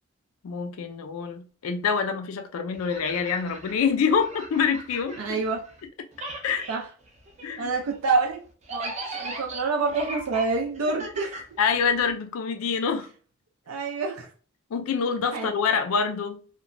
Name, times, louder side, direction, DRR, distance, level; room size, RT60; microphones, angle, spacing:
voice 1, 0.4-5.4 6.4-6.7 7.4-7.7 11.6-13.1 14.7-16.4, left 6 dB, 80° left, 0.4 m, -26 dB
sound 1, 2.7-5.9 6.1-12.1, right 2 dB, 35° right, 0.5 m, -39 dB
voice 2, 5.2-5.7 6.7-6.9 7.6-8.4 8.7-11.4 13.7-14.3 15.3-15.5, right 4 dB, 85° right, 0.4 m, -27 dB
2.8 x 2.1 x 2.5 m
head